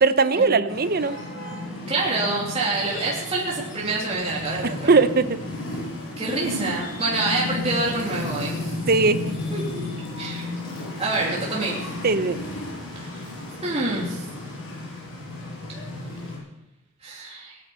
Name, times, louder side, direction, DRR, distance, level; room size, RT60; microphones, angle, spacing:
voice 1, 0.0-1.1 4.6-5.4 8.9-9.4 12.0-12.4, right 4 dB, 45° right, 12 dB, 0.7 m, -20 dB
sound 1, 0.7-16.4, left 2 dB, 60° left, 6.6 m, -33 dB
voice 2, 1.9-5.0 6.2-8.7 9.5-9.8 10.2-10.5 11.0-11.8 13.0-13.2 13.6-14.2 17.0-17.6, right 2 dB, 25° right, -5 dB, 2.7 m, -27 dB
18.5 x 10.5 x 5.6 m, 0.89 s
head